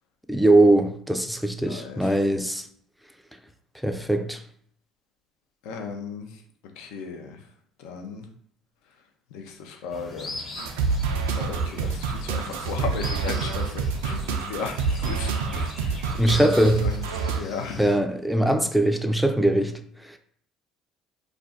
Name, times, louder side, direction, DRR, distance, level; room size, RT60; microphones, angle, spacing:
voice 1, 0.3-2.7 3.8-4.4 16.2-16.9 17.8-20.2, right 1 dB, ahead, 0.4 m, -21 dB
voice 2, 1.6-2.1 5.6-6.3 6.8-7.4 7.8-8.3 9.3-10.3 11.4-14.2 14.5-16.5 16.8-16.9 17.4-17.8, left 5 dB, 75° left, 0.5 m, -35 dB
sound 1, 9.9-18.0, left 2 dB, 35° left, 0.9 m, -41 dB
sound 2, 10.6-17.4, right 5 dB, 85° right, 0.3 m, -27 dB
2.4 x 2.2 x 3.7 m
hypercardioid pair, 75°, 0 cm